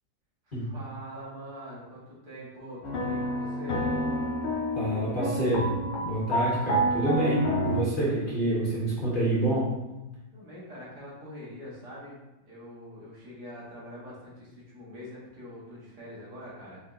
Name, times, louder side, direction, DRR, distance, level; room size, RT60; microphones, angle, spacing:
voice 1, 0.5-3.9 10.3-12.2 12.4-16.8, equal, 75° right, -6 dB, 2.0 m, -44 dB
sound 1, 2.8-7.8, equal, 70° left, 0.6 m, -29 dB
voice 2, 4.7-5.7 6.0-9.7, right 1 dB, 35° left, -7 dB, 1.4 m, -27 dB
5.0 x 3.7 x 2.6 m, 1.0 s
omnidirectional pair, 1.8 m